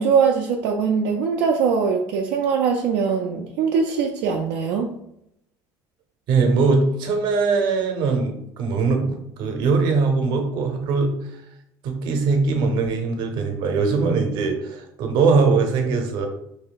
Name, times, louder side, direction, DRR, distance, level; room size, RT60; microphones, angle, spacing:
voice 1, 0.0-4.9, right 6 dB, 80° right, 1 dB, 0.4 m, -21 dB
voice 2, 6.3-11.1 11.8-16.3, right 4 dB, 60° right, 4 dB, 0.8 m, -21 dB
3.1 x 2.7 x 3.9 m, 0.77 s
cardioid pair, 150°, 9 cm